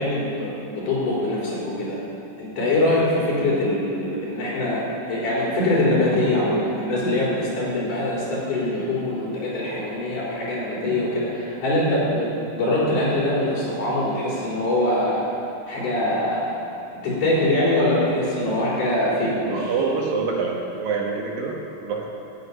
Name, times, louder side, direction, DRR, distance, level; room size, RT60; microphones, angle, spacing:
voice 1, 0.0-2.0 2.4-4.8 5.1-12.3 12.5-15.2 15.7-16.5 17.0-19.7, left 1 dB, 60° left, -6 dB, 5.5 m, -23 dB
voice 2, 19.5-22.3, right 4 dB, 75° right, 0 dB, 3.2 m, -26 dB
13.5 x 7.8 x 9.6 m, 2.7 s
omnidirectional pair, 4.1 m